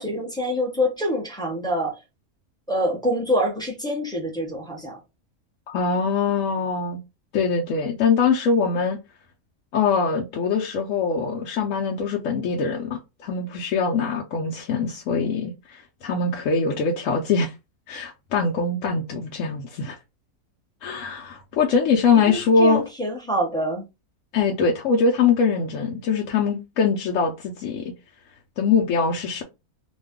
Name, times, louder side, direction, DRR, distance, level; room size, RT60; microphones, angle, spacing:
voice 1, 0.0-1.9 2.7-5.0 22.3-23.9, equal, 5° left, 0.5 m, -26 dB
voice 2, 5.7-7.0 7.3-9.0 9.7-17.5 17.9-20.0 20.8-22.8 24.3-27.9 28.6-29.4, left 5 dB, 65° left, 0.9 m, -23 dB
2.6 x 2.3 x 3.5 m
omnidirectional pair, 1.6 m